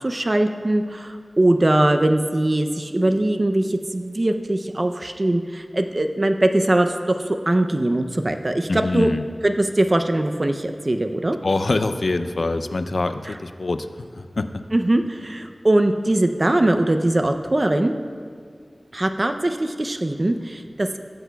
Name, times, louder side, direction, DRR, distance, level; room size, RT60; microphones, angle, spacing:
voice 1, 0.0-7.1 7.5-9.1 9.4-11.4 13.3-13.4 14.7-17.9 18.9-21.0, right 1 dB, 45° right, 6 dB, 0.5 m, -21 dB
voice 2, 8.7-9.2 11.4-14.5, left 2 dB, 80° left, 10 dB, 0.4 m, -24 dB
17.0 x 8.1 x 2.3 m, 2.1 s
wide cardioid pair, 55°, 0 cm